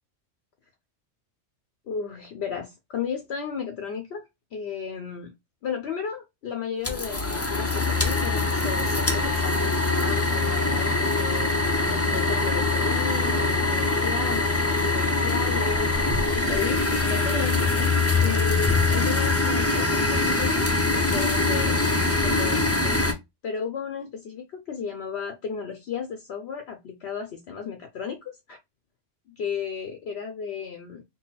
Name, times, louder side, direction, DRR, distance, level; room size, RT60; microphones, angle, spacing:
voice 1, 1.9-5.3 5.6-11.5 11.9-17.9 18.2-21.8 22.2-23.0 23.4-28.6 29.3-31.0, left 6 dB, 65° left, 0.9 m, -34 dB
sound 1, 6.8-23.1, left 3 dB, 15° left, 0.5 m, -23 dB
3.9 x 2.1 x 3.9 m
omnidirectional pair, 1.3 m